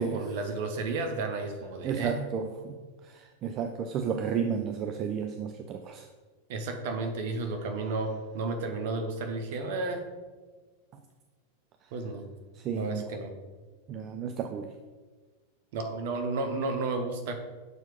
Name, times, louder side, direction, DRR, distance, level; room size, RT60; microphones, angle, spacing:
voice 1, 0.0-2.2 6.5-10.0 11.9-12.2 12.7-13.3 15.7-17.3, right 3 dB, 50° right, 5 dB, 1.0 m, -32 dB
voice 2, 1.8-2.8 3.0-6.1 12.6-13.0 13.9-14.7, right 7 dB, 35° right, 6 dB, 0.4 m, -32 dB
6.5 x 4.5 x 5.0 m, 1.4 s
figure-of-eight pair, 90°, 0 cm